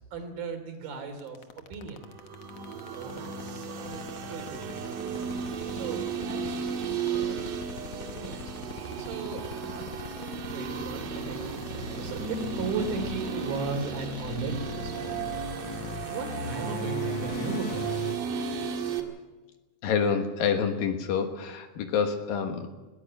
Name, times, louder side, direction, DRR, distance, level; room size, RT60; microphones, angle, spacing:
voice 1, 0.1-2.0 2.9-5.0 5.7-6.7 7.0-7.4 8.0-8.7 9.0-9.9 10.2-15.2 15.7-17.9, right 4 dB, 65° right, 6 dB, 4.9 m, -37 dB
sound 1, 1.2-18.2, left 7 dB, 85° left, 1.4 m, -39 dB
sound 2, 2.1-19.0, right 6 dB, 85° right, 4.0 m, -34 dB
voice 2, 19.8-22.7, left 6 dB, 70° left, 5 dB, 3.0 m, -27 dB
19.5 x 17.5 x 8.6 m, 1.2 s
omnidirectional pair, 4.5 m